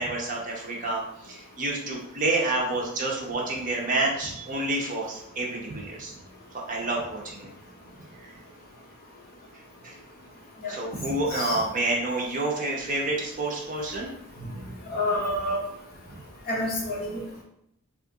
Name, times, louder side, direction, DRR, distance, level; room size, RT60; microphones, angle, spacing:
voice 1, 0.0-6.2 6.7-7.5 8.2-8.3 9.8-10.0 10.7-14.1 16.1-16.2, right 2 dB, 35° right, -2 dB, 0.7 m, -29 dB
voice 2, 14.9-15.6 16.5-17.2, left 1 dB, 45° left, -3 dB, 0.8 m, -28 dB
2.7 x 2.4 x 3.6 m, 0.74 s
head